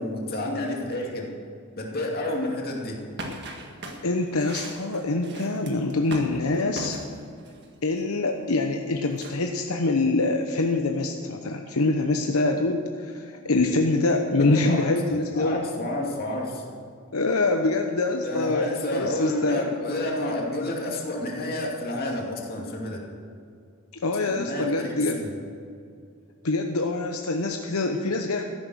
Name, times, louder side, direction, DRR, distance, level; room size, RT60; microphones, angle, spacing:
voice 1, 0.0-1.3 1.7-3.0 14.4-16.6 18.2-23.0 24.3-25.4, left 1 dB, 45° left, -1 dB, 2.5 m, -30 dB
sound 1, 3.2-7.6 9.2-9.4, right 1 dB, 50° right, 1.6 m, -37 dB
voice 2, 4.0-7.0 7.8-15.6 17.1-19.7 23.9-25.2 26.4-28.4, left 2 dB, 75° left, 3 dB, 0.9 m, -25 dB
14.0 x 11.0 x 6.3 m, 2.4 s
head